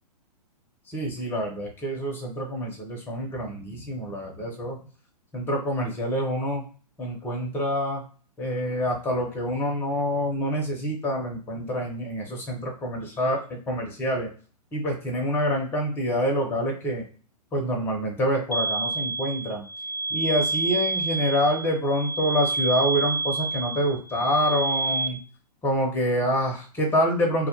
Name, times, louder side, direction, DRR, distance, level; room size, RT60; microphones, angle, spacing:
voice 1, 0.9-4.8 5.3-6.6 7.0-8.0 8.4-14.3 14.7-17.0 17.5-19.7 20.1-25.2 25.6-27.5, equal, 10° left, 1 dB, 0.5 m, -26 dB
sound 1, 18.5-25.1, right 3 dB, 80° left, 0.5 m, -28 dB
2.1 x 2.1 x 2.8 m, 0.41 s
figure-of-eight pair, 110°, 21 cm